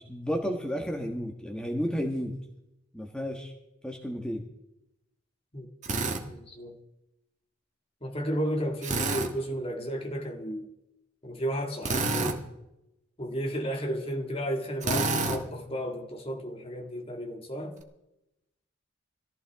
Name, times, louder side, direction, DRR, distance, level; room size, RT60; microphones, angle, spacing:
voice 1, 0.0-2.3 2.9-3.5 3.8-4.4, equal, 5° left, 1.5 m, -32 dB
Drill, 5.8-6.2 8.8-9.3 11.8-12.4 14.8-15.4, right 3 dB, 35° right, 1.6 m, -28 dB
voice 2, 6.2-6.8 8.0-10.7 11.2-12.4 13.2-17.8, equal, 30° left, 2.1 m, -33 dB
21.5 x 15.0 x 3.6 m
head